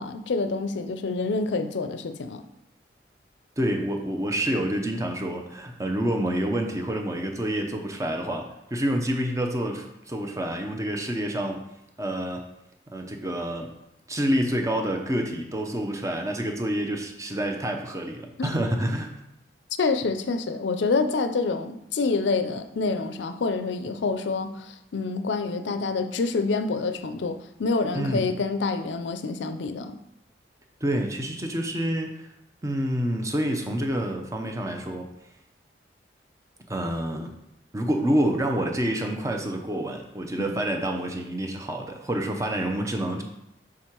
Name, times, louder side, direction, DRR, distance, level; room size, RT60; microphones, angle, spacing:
voice 1, 0.0-2.4 18.4-18.5 19.8-30.0 40.4-40.6, left 4 dB, 80° left, 10 dB, 0.5 m, -27 dB
voice 2, 3.6-8.5 8.7-11.6 12.0-12.5 12.9-13.7 14.1-19.1 27.9-28.3 30.8-32.3 32.6-35.1 36.7-37.3 37.7-43.2, right 1 dB, 15° right, 3 dB, 0.6 m, -28 dB
6.2 x 3.6 x 4.4 m, 0.84 s
head